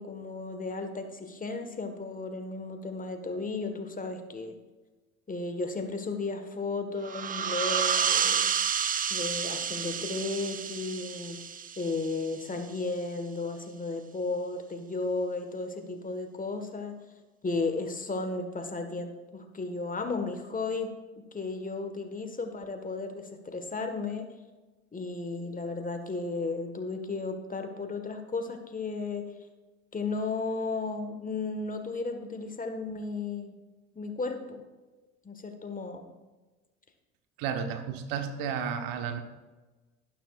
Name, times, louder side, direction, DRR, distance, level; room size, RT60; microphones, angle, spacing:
voice 1, 0.0-4.5 5.3-8.5 9.1-11.4 11.8-16.9 17.4-20.9 21.3-24.3 24.9-29.2 29.9-33.5 33.9-34.6 35.2-36.0, left 3 dB, 20° left, 6 dB, 1.5 m, -34 dB
sound 1, 7.0-12.4, right 7 dB, 25° right, 0.5 m, -30 dB
voice 2, 37.4-39.2, right 7 dB, 65° right, 7 dB, 1.2 m, -32 dB
12.0 x 11.5 x 2.4 m, 1.2 s
hypercardioid pair, 65°, 36 cm